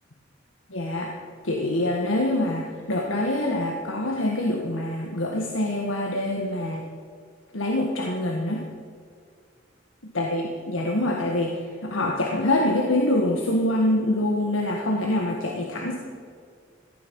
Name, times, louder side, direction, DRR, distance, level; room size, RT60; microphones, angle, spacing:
voice 1, 0.7-1.1 1.4-6.8 7.5-8.6 10.1-16.0, left 1 dB, 85° left, 0 dB, 1.6 m, -25 dB
17.5 x 14.5 x 5.3 m, 2.2 s
head